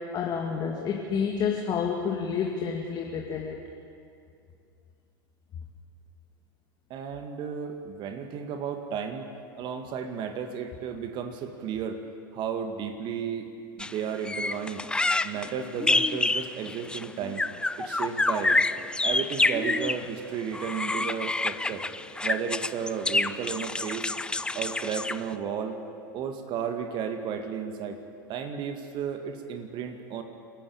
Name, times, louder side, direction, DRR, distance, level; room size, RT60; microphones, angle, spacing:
voice 1, 0.1-3.6, left 6 dB, 35° left, 0 dB, 2.2 m, -29 dB
voice 2, 6.9-9.3 9.5-12.0 12.3-13.5 13.8-14.8 15.2-17.4 17.8-18.6 19.0-21.9 22.2-24.1 24.5-25.8 26.1-28.0 28.3-30.2, right 7 dB, 45° right, 6 dB, 2.0 m, -33 dB
sound 1, 13.8-13.9 14.2-20.1 20.5-25.3, left 2 dB, 10° left, 0.6 m, -27 dB
27.5 x 11.5 x 8.7 m, 2.4 s
figure-of-eight pair, 80°, 11 cm